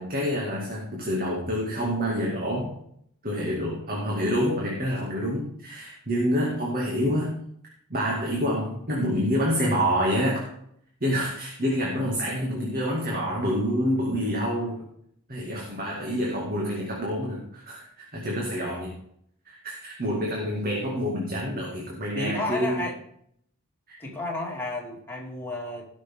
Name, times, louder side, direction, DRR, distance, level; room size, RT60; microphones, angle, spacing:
voice 1, 0.0-2.7 3.2-7.3 7.9-10.5 11.0-14.9 15.3-18.9 19.5-22.9 23.9-24.0, equal, 40° right, -3 dB, 2.1 m, -27 dB
voice 2, 22.1-23.0 24.0-25.9, left 2 dB, 10° left, -3 dB, 2.8 m, -32 dB
17.5 x 6.3 x 3.6 m, 0.70 s
head